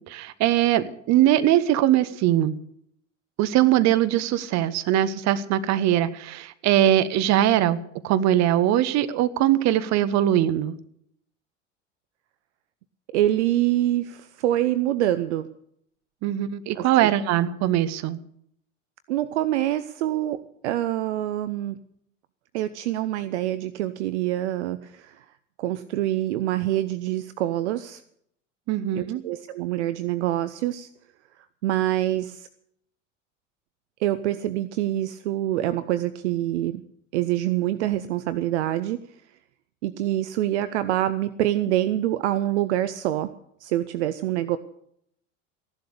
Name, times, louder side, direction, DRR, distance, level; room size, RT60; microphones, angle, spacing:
voice 1, 0.1-2.6 3.4-7.8 8.0-10.8 16.2-18.2 28.7-29.2, right 12 dB, 45° right, 14 dB, 1.2 m, -21 dB
voice 2, 13.1-15.5 16.7-17.1 19.1-21.8 22.5-25.2 25.6-28.0 29.0-30.9 31.6-32.5 34.0-36.8 37.1-39.0 39.8-43.3 43.6-44.6, right 13 dB, 65° right, 13 dB, 0.8 m, -25 dB
15.0 x 11.5 x 6.8 m, 0.70 s
figure-of-eight pair, 70°, 37 cm